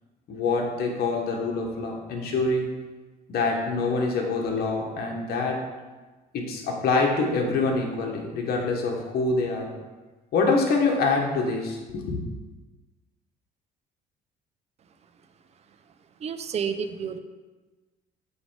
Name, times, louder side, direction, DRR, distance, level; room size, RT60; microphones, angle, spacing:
voice 1, 0.3-2.7 3.3-5.6 6.3-9.7 10.3-12.2, left 3 dB, 65° left, 1 dB, 1.3 m, -25 dB
voice 2, 16.2-17.2, right 7 dB, 40° right, 9 dB, 0.5 m, -30 dB
8.2 x 3.3 x 4.7 m, 1.2 s
cardioid pair, 110°, 17 cm